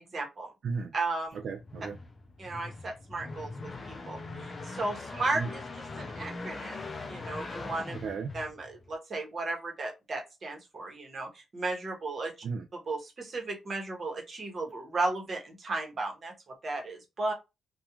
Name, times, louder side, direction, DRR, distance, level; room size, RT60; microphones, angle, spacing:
voice 1, 0.0-0.5 0.9-1.4 2.4-7.9 8.3-12.3 12.7-16.3 16.6-17.3, right 2 dB, 40° right, 1.0 m, -35 dB
voice 2, 0.6-0.9 1.3-2.0 5.3-5.5 7.9-8.3 12.4-12.7, right 5 dB, 65° right, 0.3 m, -35 dB
sound 1, 1.3-8.9, left 3 dB, 30° left, 0.5 m, -41 dB
2.3 x 2.3 x 2.8 m
cardioid pair, 125°, 0 cm